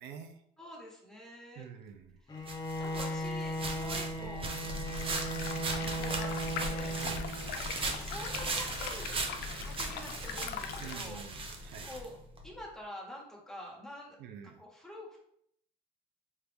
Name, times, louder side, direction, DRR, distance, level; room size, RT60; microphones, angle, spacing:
voice 1, 0.0-0.4 1.6-2.2 4.2-4.3 6.9-7.3 10.8-11.9 14.2-14.6, right 8 dB, 80° right, 7 dB, 0.5 m, -47 dB
voice 2, 0.6-1.7 2.2-4.5 5.7-6.9 8.0-9.2 9.6-11.2 11.6-12.1 12.4-14.2 14.4-15.2, left 1 dB, 5° left, -3 dB, 1.3 m, -47 dB
Bowed string instrument, 2.3-7.7, right 1 dB, 25° left, 0.7 m, -37 dB
sound 1, 2.5-12.5, right 2 dB, 30° right, 0.7 m, -38 dB
sound 2, 4.9-11.0, left 7 dB, 75° left, 0.4 m, -42 dB
4.4 x 2.4 x 3.4 m, 0.71 s
cardioid pair, 110°, 17 cm